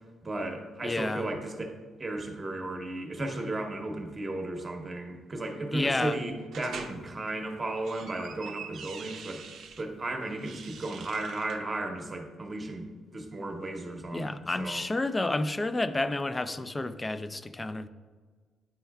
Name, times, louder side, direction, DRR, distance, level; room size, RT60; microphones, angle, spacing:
voice 1, 0.2-9.4 9.8-12.9 13.1-14.8, right 2 dB, 30° right, 4 dB, 0.8 m, -35 dB
voice 2, 0.8-1.3 5.7-6.2 14.1-17.9, left 2 dB, 20° left, 11 dB, 0.3 m, -30 dB
sound 1, 6.5-7.0 7.6-9.8 10.3-11.6, right 6 dB, 70° right, 0.5 m, -44 dB
9.2 x 4.4 x 2.3 m, 1.5 s
cardioid pair, 90°, 0 cm